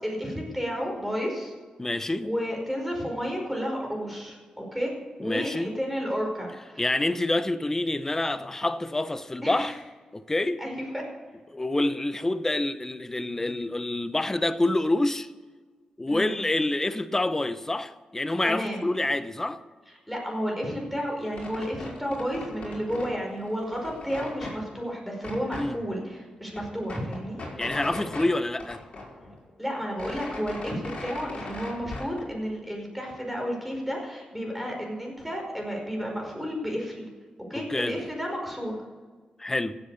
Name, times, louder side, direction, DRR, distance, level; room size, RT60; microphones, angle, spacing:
voice 1, 0.0-1.5 2.2-4.9 5.2-6.9 9.4-9.7 10.6-11.0 16.1-16.4 18.4-18.9 20.1-27.4 29.6-37.1 37.5-38.8, equal, ahead, 5.1 m, -32 dB
voice 2, 1.8-2.3 5.2-5.7 6.8-9.8 10.1-10.6 11.5-15.3 16.0-19.6 25.5-25.8 27.6-28.8 37.5-38.0 39.4-39.8, left 2 dB, 20° left, 0.8 m, -27 dB
sound 1, 21.2-23.2 23.5-24.6 25.2-25.7 26.1-26.2 26.4-28.3 28.6-29.5 29.8-32.2, left 2 dB, 55° left, 5.4 m, -39 dB
15.5 x 8.0 x 7.0 m
cardioid pair, 85°, 2 cm